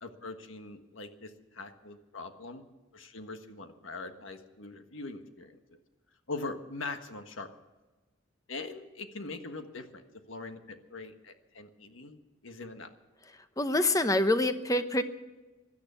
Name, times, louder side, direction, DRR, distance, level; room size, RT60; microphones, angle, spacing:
voice 1, 0.0-2.6 2.9-5.6 6.3-7.5 8.5-12.2 12.4-12.9, left 3 dB, 85° left, 7 dB, 1.5 m, -42 dB
voice 2, 13.6-15.0, left 1 dB, 15° left, 10 dB, 0.8 m, -26 dB
17.0 x 12.0 x 6.9 m, 1.2 s
head